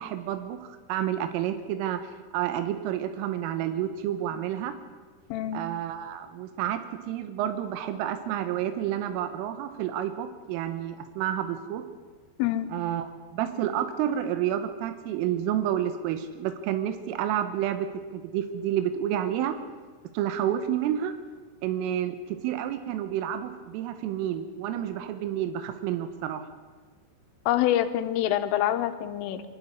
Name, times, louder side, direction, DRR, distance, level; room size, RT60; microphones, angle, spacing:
voice 1, 0.0-4.8 5.5-6.8 7.1-11.8 12.7-19.6 20.2-21.1 21.6-26.4, right 10 dB, 85° right, 9 dB, 3.6 m, -30 dB
voice 2, 5.3-5.6 12.4-12.7 27.5-29.4, left 12 dB, 85° left, 9 dB, 3.5 m, -26 dB
23.5 x 12.0 x 9.7 m, 1.4 s
omnidirectional pair, 5.7 m